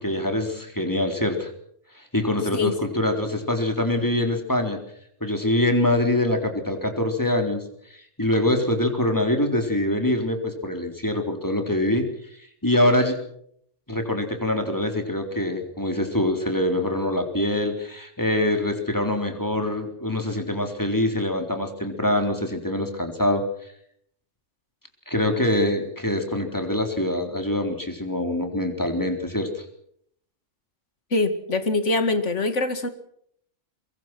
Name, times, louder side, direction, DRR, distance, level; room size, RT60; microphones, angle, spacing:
voice 1, 0.0-1.5 2.0-4.8 5.2-7.6 8.2-12.0 12.6-13.2 13.9-23.4 25.1-29.6, left 1 dB, 15° left, 4 dB, 3.7 m, -24 dB
voice 2, 31.1-32.9, left 2 dB, 70° left, 10 dB, 2.3 m, -23 dB
23.5 x 23.5 x 6.2 m, 0.68 s
omnidirectional pair, 1.3 m